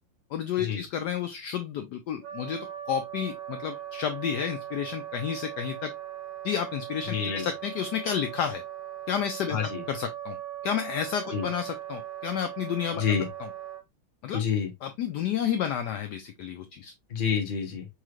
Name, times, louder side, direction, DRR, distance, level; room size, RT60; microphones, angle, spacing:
voice 1, 0.3-5.9 6.4-8.6 9.1-9.6 9.9-10.4 10.6-13.0 14.2-14.4 14.8-16.9, left 8 dB, 75° left, 1.0 m, -31 dB
Wind instrument woodwind instrument, 2.2-13.8, right 11 dB, 60° right, 1.4 m, -39 dB
voice 2, 7.1-7.5 9.5-9.8 11.3-11.5 12.9-13.3 14.3-14.7 17.1-17.9, left 7 dB, 35° left, 0.9 m, -28 dB
5.5 x 3.1 x 2.4 m
omnidirectional pair, 2.2 m